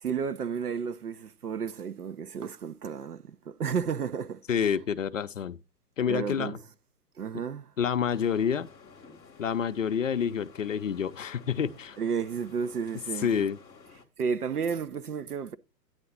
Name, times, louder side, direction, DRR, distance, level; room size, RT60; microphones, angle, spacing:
voice 1, 0.0-4.4 6.1-6.6 7.2-7.7 12.0-13.5 14.2-15.6, right 6 dB, 65° right, 0.8 m, -32 dB
voice 2, 4.5-5.6 6.0-6.6 7.3-7.4 7.8-8.7 9.4-12.0 13.2-13.6, left 7 dB, 50° left, 0.7 m, -28 dB
sound 1, 8.0-14.0, left 5 dB, 5° left, 0.7 m, -53 dB
9.7 x 3.8 x 6.9 m
figure-of-eight pair, 120°, 49 cm